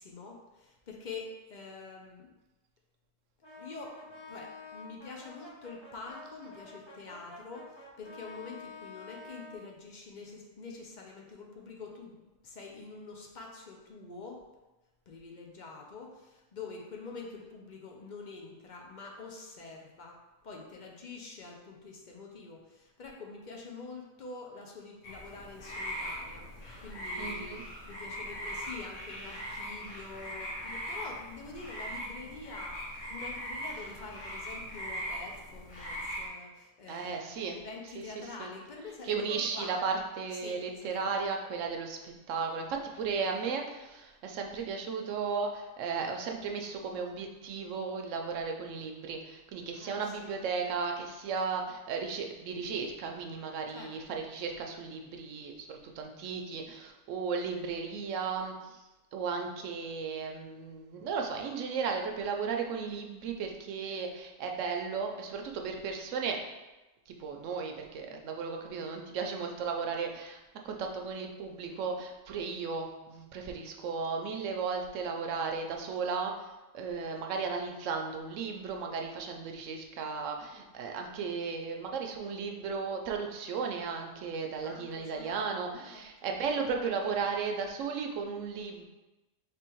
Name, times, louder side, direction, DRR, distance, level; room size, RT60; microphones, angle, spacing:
voice 1, 0.0-2.3 3.6-14.4 15.1-20.2 20.4-27.6 27.9-39.7 40.4-41.1 49.7-50.4 53.7-54.3 84.6-85.4 85.8-86.3, left 4 dB, 50° left, 0 dB, 0.6 m, -46 dB
Brass instrument, 3.4-9.6, left 3 dB, 20° left, 1.3 m, -49 dB
sound 1, 25.0-36.3, equal, 70° left, 1.4 m, -40 dB
voice 2, 27.2-27.6 36.9-37.6 37.9-38.5 39.0-58.8 59.1-66.4 67.1-76.3 76.7-88.9, right 5 dB, 75° right, 2 dB, 1.0 m, -35 dB
3.4 x 3.3 x 4.5 m, 1.1 s
omnidirectional pair, 1.4 m